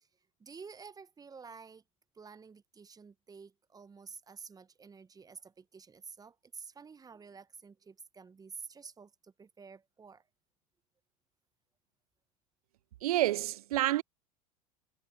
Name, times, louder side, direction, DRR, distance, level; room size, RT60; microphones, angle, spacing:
voice 1, 0.4-1.8 2.1-10.2, right 5 dB, 20° right, 1.1 m, -50 dB
voice 2, 13.0-14.0, right 15 dB, 75° right, 0.4 m, -28 dB
hypercardioid pair, 80°, 19 cm